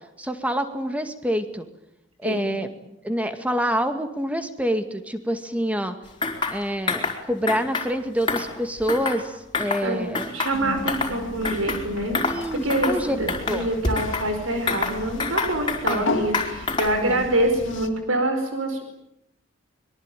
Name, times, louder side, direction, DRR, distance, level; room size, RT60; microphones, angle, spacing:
voice 1, 0.2-1.7 2.2-2.7 3.0-6.0 6.5-10.3 12.2-13.2 13.5-13.7 15.9-16.1 17.0-17.3, equal, 5° right, 8 dB, 2.1 m, -27 dB
voice 2, 2.2-2.6 9.8-10.0 10.3-12.3 12.6-18.8, right 1 dB, 85° right, 5 dB, 5.0 m, -25 dB
sound 1, 6.2-6.6 6.9-7.2 7.5-7.9 8.2-9.2 9.5-9.9 10.2-11.2 11.4-11.8 12.1-12.4 12.7-13.0 13.3-14.3 14.7-16.0 16.3-17.0, left 3 dB, 25° left, 4.4 m, -26 dB
sound 2, 10.5-17.9, left 3 dB, 65° left, 3.0 m, -35 dB
25.0 x 23.0 x 9.3 m, 0.81 s
head